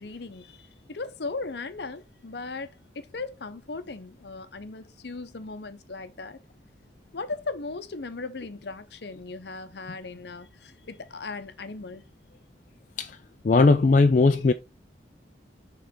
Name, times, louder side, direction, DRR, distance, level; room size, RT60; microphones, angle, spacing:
voice 1, 0.0-6.4 7.1-12.0, left 3 dB, 65° left, 0.7 m, -37 dB
voice 2, 13.4-14.5, left 3 dB, 40° left, 0.4 m, -18 dB
6.8 x 3.9 x 3.7 m
head